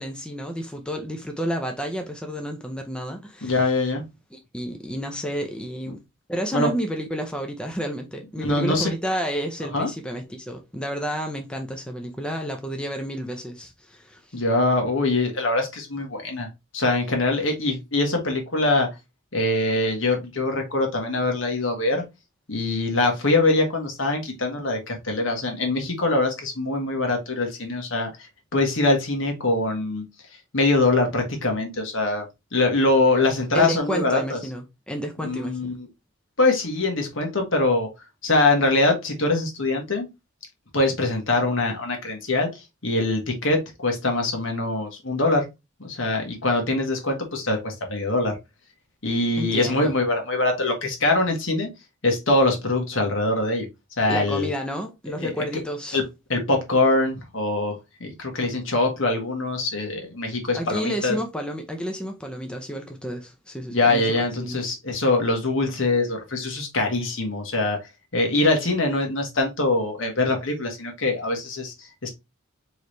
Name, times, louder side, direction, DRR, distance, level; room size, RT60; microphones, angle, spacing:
voice 1, 0.0-3.5 4.3-6.0 6.3-14.4 33.5-35.8 49.4-49.9 54.1-56.0 60.5-64.8, equal, 5° left, 0.6 m, -31 dB
voice 2, 3.4-4.0 6.5-6.7 8.4-8.9 9.7-9.9 14.3-16.5 16.7-18.9 19.3-22.0 22.5-28.1 28.5-30.0 30.5-32.2 32.5-34.4 35.2-35.7 36.4-37.9 38.2-40.1 40.7-42.5 42.8-45.4 45.8-48.4 49.0-51.7 52.0-53.7 54.0-54.5 55.2-55.4 55.9-56.0 56.3-57.7 58.0-61.2 63.7-67.8 68.1-71.7 72.0-72.1, left 2 dB, 65° left, 1.5 m, -23 dB
4.7 x 3.1 x 3.3 m
head